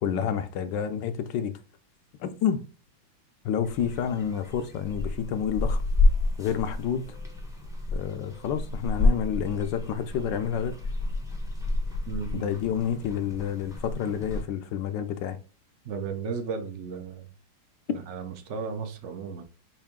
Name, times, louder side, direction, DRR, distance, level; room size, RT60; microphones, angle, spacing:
voice 1, 0.0-1.5 2.2-2.6 3.4-5.8 6.4-7.2 7.9-10.8 12.3-15.4, left 8 dB, 75° left, 1.2 m, -29 dB
sound 1, 3.6-14.4, left 2 dB, 5° right, 0.4 m, -29 dB
voice 2, 12.1-12.6 15.8-17.3 17.9-19.4, right 5 dB, 65° right, 0.7 m, -34 dB
5.6 x 2.6 x 3.5 m
omnidirectional pair, 2.1 m